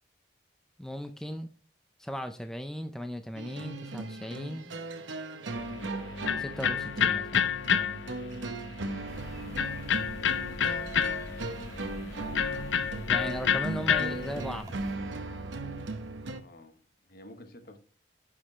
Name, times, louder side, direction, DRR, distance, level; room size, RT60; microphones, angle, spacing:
voice 1, 0.8-1.5 2.0-4.7 6.4-7.3 13.1-14.8, equal, 5° left, 0.4 m, -37 dB
sound 1, 3.3-16.4, right 2 dB, 85° right, 0.8 m, -38 dB
Electric guitar, 5.5-14.6, left 7 dB, 85° left, 0.6 m, -30 dB
sound 2, 9.1-15.0, equal, 20° right, 1.5 m, -46 dB
voice 2, 16.4-17.8, left 1 dB, 55° left, 1.0 m, -51 dB
9.8 x 5.0 x 3.1 m
head